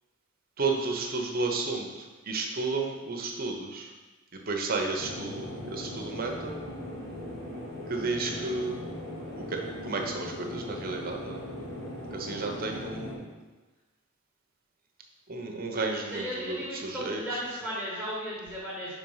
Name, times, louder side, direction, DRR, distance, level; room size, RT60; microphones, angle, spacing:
voice 1, 0.6-1.9 2.3-3.9 4.5-6.5 7.9-8.7 9.3-11.4 12.1-13.3 15.3-17.2, right 3 dB, 45° right, 2 dB, 0.8 m, -32 dB
sound 1, 5.0-13.2, left 1 dB, 70° left, 2.1 m, -39 dB
voice 2, 12.4-12.7 16.0-18.9, equal, ahead, -8 dB, 1.5 m, -36 dB
5.3 x 4.5 x 5.5 m, 1.2 s
head